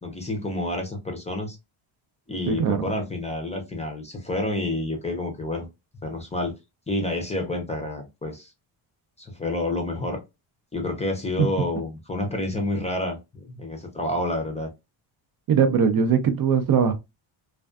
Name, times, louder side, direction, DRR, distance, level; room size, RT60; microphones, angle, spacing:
voice 1, 0.0-1.6 2.3-5.7 6.0-6.5 6.9-8.5 9.2-10.2 10.7-14.7, left 1 dB, 15° left, 0.5 m, -29 dB
voice 2, 2.5-2.9 15.5-16.9, right 6 dB, 45° right, 0.4 m, -20 dB
2.5 x 2.3 x 2.3 m
cardioid pair, 125°, 50 cm